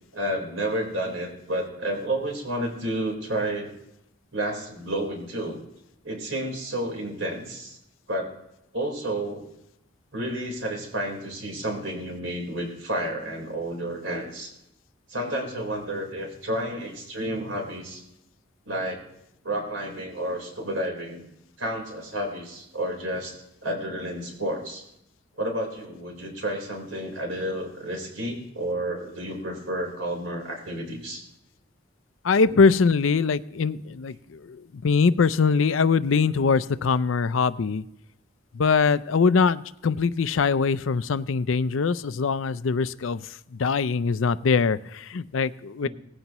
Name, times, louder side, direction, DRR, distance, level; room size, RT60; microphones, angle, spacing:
voice 1, 0.1-3.7 4.3-5.6 6.0-7.8 8.1-8.3 8.7-9.5 10.1-14.5 15.1-18.0 18.7-19.0 19.4-21.3 21.6-23.4 23.6-24.8 25.4-31.2 45.8-45.9, right 1 dB, 80° right, 0 dB, 4.0 m, -31 dB
voice 2, 32.2-37.8 38.5-43.2 43.6-45.9, left 5 dB, 85° left, 15 dB, 0.5 m, -22 dB
18.5 x 15.0 x 3.0 m, 0.81 s
head